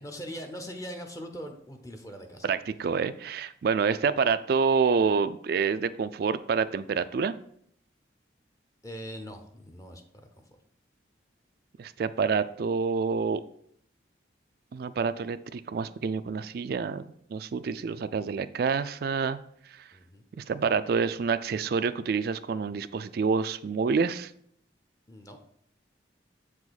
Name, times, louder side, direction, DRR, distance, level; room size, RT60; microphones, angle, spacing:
voice 1, 0.0-2.5 8.8-10.6 19.9-20.2 25.1-25.4, equal, 20° left, 5 dB, 0.7 m, -41 dB
voice 2, 2.4-7.3 11.8-13.4 14.7-17.0 17.3-19.4 20.4-24.3, right 5 dB, 55° right, 13 dB, 0.3 m, -27 dB
7.5 x 4.9 x 4.0 m, 0.68 s
head